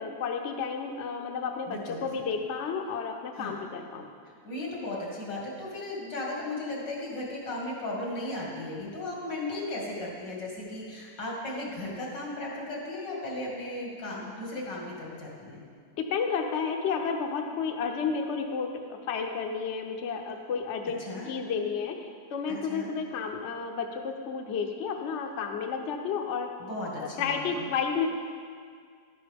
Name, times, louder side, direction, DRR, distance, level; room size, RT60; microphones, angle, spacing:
voice 1, 0.0-4.1 16.0-21.0 21.3-22.0 22.3-26.5 27.0-28.1, left 5 dB, 55° left, 3 dB, 0.9 m, -31 dB
voice 2, 1.7-2.0 3.3-3.5 4.4-15.6 21.0-21.3 22.5-22.9 26.6-27.7, left 2 dB, 85° left, -3 dB, 2.8 m, -36 dB
11.5 x 10.0 x 3.5 m, 2.1 s
omnidirectional pair, 1.9 m